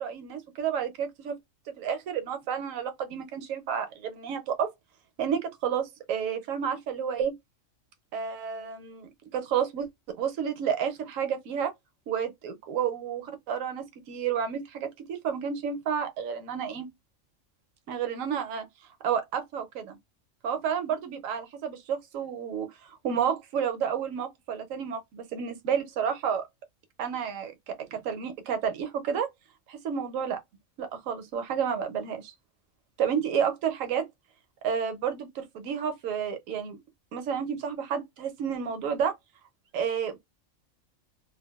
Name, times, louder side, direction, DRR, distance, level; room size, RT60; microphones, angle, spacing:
voice 1, 0.0-1.4 1.7-4.7 5.2-7.4 8.1-11.7 12.1-16.9 17.9-18.7 19.0-20.0 20.4-26.5 27.0-29.3 29.7-30.4 30.8-32.3 33.0-34.1 34.6-36.8 37.1-39.2 39.7-40.2, right 7 dB, 80° right, 1.0 m, -31 dB
2.5 x 2.2 x 2.2 m
omnidirectional pair, 1.4 m